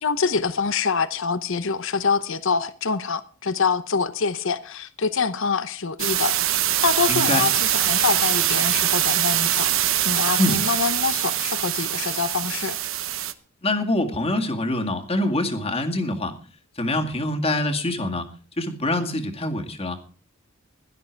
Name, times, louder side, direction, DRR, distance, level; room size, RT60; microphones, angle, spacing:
voice 1, 0.0-6.4 6.8-9.7 10.0-12.8, left 5 dB, 65° left, 0.9 m, -25 dB
sound 1, 6.0-13.3, right 12 dB, 65° right, 1.0 m, -23 dB
voice 2, 7.1-7.4 10.4-10.6 13.6-16.3 16.8-18.3 18.6-20.0, left 1 dB, 30° left, 2.1 m, -25 dB
16.5 x 12.0 x 4.6 m
head